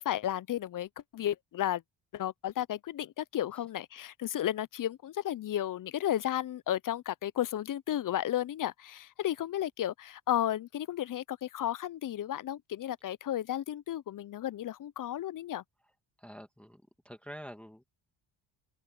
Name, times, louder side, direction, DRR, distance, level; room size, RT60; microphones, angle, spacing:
voice 1, 0.0-1.8 2.1-15.6, left 12 dB, 45° left, 0.5 m, -33 dB
voice 2, 16.2-17.8, equal, 5° left, 1.7 m, -47 dB
cardioid pair, 100°, 47 cm